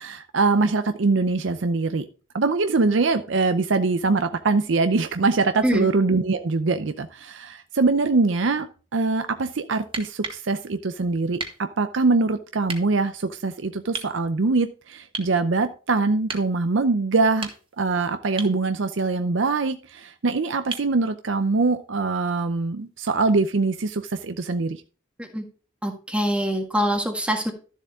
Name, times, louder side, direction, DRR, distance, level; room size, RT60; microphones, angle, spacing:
voice 1, 0.0-2.0 2.3-8.7 8.9-17.5 17.8-24.8, right 3 dB, 70° right, 9 dB, 0.6 m, -23 dB
sound 1, 9.9-10.5 11.4-11.6 12.7-12.8 13.9-14.1 15.1-15.4 16.3-16.5 17.2-17.8 18.4-18.6 20.7-20.9 22.8-22.9, right 4 dB, 30° right, 1.8 m, -34 dB
voice 2, 25.8-27.5, equal, 5° right, 3 dB, 1.7 m, -24 dB
12.5 x 7.3 x 3.7 m, 0.37 s
head